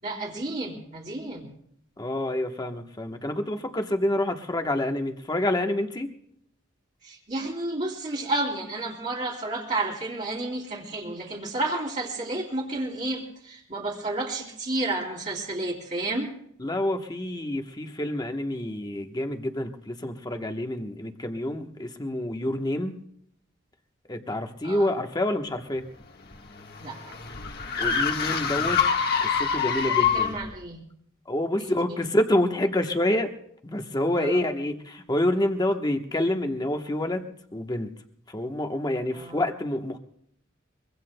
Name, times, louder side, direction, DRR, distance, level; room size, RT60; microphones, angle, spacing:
voice 1, 0.0-1.5 7.0-16.3 24.6-24.9 26.8-27.1 29.9-30.8 31.9-32.1 34.1-34.4 39.1-39.4, right 2 dB, 40° right, -4 dB, 3.0 m, -31 dB
voice 2, 2.0-6.1 16.6-23.0 24.1-25.8 27.8-28.8 29.2-30.4 31.3-33.3 33.6-37.9 38.3-40.0, left 1 dB, 20° left, 5 dB, 1.1 m, -27 dB
sound 1, 26.0-30.5, left 7 dB, 50° left, 1.4 m, -26 dB
23.5 x 23.5 x 2.2 m, 0.70 s
head